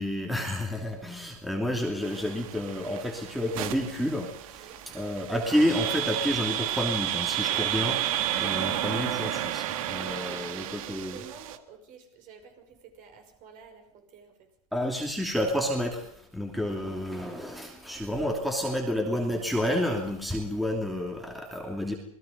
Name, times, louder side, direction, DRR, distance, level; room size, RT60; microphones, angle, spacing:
voice 1, 0.0-4.7 4.9-11.2 14.7-21.9, left 1 dB, ahead, 2.9 m, -30 dB
sound 1, 2.0-11.6, right 12 dB, 65° right, 1.7 m, -32 dB
voice 2, 4.6-4.9 10.2-14.5, right 6 dB, 45° right, 5.6 m, -49 dB
27.5 x 20.0 x 5.3 m
supercardioid pair, 130°, 19 cm